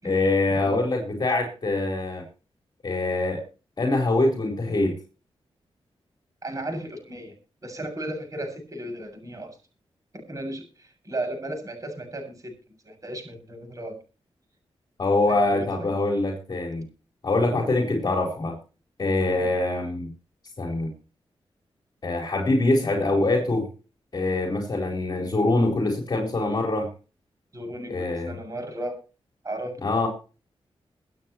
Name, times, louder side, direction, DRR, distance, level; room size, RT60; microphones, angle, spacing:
voice 1, 0.0-2.2 2.8-3.4 3.8-4.9 15.0-16.8 17.2-18.6 19.0-20.1 20.6-20.9 22.0-23.7 24.1-26.9 27.9-28.3 29.8-30.1, left 2 dB, 45° left, 1 dB, 4.2 m, -24 dB
voice 2, 6.4-7.3 7.6-9.5 10.1-12.5 12.8-14.0 15.3-16.0 19.2-19.5 27.5-29.0 29.4-29.8, right 1 dB, 35° right, 5 dB, 7.1 m, -35 dB
24.5 x 8.9 x 3.1 m, 0.34 s
wide cardioid pair, 140°, 10 cm